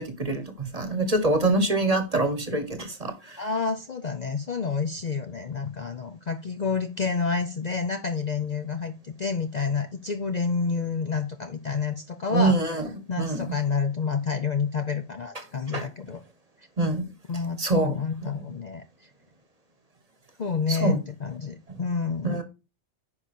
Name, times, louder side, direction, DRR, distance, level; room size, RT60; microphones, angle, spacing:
voice 1, 0.0-3.5 12.3-12.9 13.2-13.6 15.7-15.9 16.8-17.1 17.6-18.4 20.7-21.0 21.7-21.8 22.2-22.4, right 2 dB, 35° right, 1.2 m, -25 dB
voice 2, 3.4-12.6 13.1-16.2 17.3-18.8 20.4-22.4, left 5 dB, 45° left, 0.6 m, -29 dB
9.8 x 5.2 x 4.3 m
omnidirectional pair, 1.2 m